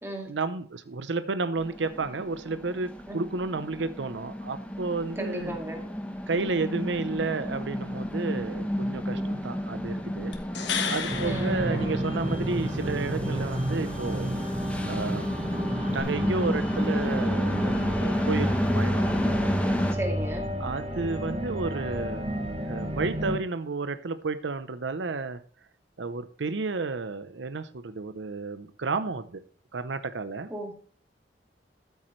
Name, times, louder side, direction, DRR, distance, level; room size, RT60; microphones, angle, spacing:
voice 1, 0.2-5.6 6.3-10.3 10.9-14.3 14.8-15.6 15.9-19.2 20.6-25.4 26.0-29.4 29.7-30.5, right 3 dB, 85° right, 12 dB, 0.7 m, -32 dB
sound 1, 1.6-20.0, equal, 5° left, 1.0 m, -31 dB
voice 2, 5.2-5.8 8.3-8.4 9.1-9.3 11.2-11.9 19.9-20.5 30.5-30.7, right 1 dB, 15° right, 2 dB, 2.1 m, -35 dB
sound 2, 10.3-12.6 16.0-16.1, left 6 dB, 85° left, 1.4 m, -33 dB
sound 3, 11.1-23.4, equal, 35° right, 1.4 m, -32 dB
13.0 x 8.3 x 3.2 m, 0.43 s
head